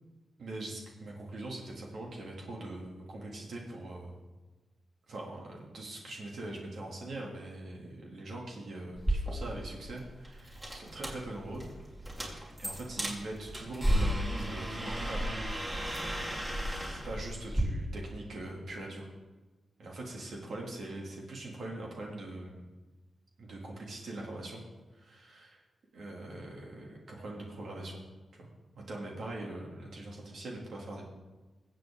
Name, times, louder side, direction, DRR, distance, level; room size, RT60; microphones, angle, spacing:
voice 1, 0.4-4.2 5.1-11.6 12.6-15.3 16.9-19.1 19.8-22.7 23.4-24.6 24.9-25.6 25.9-28.0 28.4-28.5 28.7-31.0, right 2 dB, 70° right, -2 dB, 2.7 m, -42 dB
sound 1, 9.0-17.6, equal, 20° right, 3.0 m, -34 dB
23.0 x 7.9 x 3.8 m, 1.2 s
wide cardioid pair, 100°, 0 cm